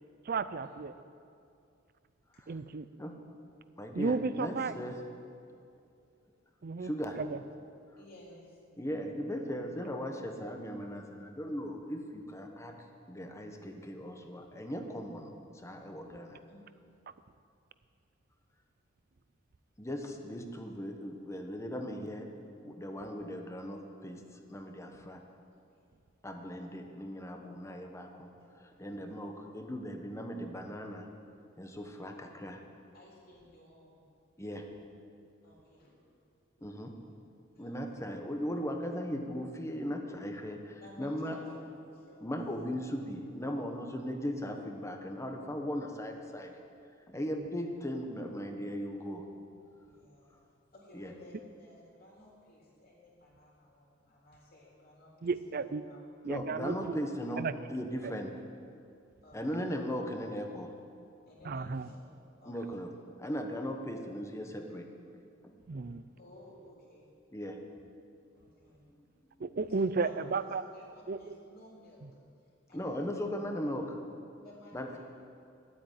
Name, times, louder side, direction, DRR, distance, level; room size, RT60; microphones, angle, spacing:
voice 1, 0.3-0.9 2.5-2.9 3.9-4.8 6.6-6.9 7.2-7.4 55.2-55.8 56.2-57.0 57.4-57.5 58.0-58.1 61.4-61.9 65.7-66.0 69.4-70.6 71.1-71.2 72.0-72.1, right 4 dB, 50° right, 14 dB, 0.5 m, -33 dB
voice 2, 3.8-5.0 6.8-7.2 8.8-12.8 13.1-15.3 15.6-16.4 19.8-22.2 22.6-24.2 24.5-25.2 26.2-28.3 28.6-31.1 31.6-32.6 34.4-34.6 36.6-36.9 37.6-41.4 42.2-46.5 47.1-49.2 50.9-51.1 56.3-57.4 57.7-58.3 59.3-60.7 62.5-62.9 63.2-64.9 65.4-65.5 67.3-67.6 72.7-74.0 74.7-74.9, equal, 15° left, 4 dB, 1.1 m, -38 dB
voice 3, 5.8-6.2 6.6-6.7 8.0-8.6 16.5-16.6 25.5-26.0 28.6-29.0 32.9-34.1 35.4-36.0 36.6-37.1 37.5-38.1 40.8-41.6 41.9-42.2 49.8-50.4 50.7-56.0 59.2-59.6 61.3-62.0 62.4-62.8 66.2-67.1 68.3-68.8 69.6-70.3 70.7-72.0 72.7-73.3 74.4-75.0, left 1 dB, 50° left, -4 dB, 3.6 m, -56 dB
12.5 x 8.6 x 9.3 m, 2.5 s
head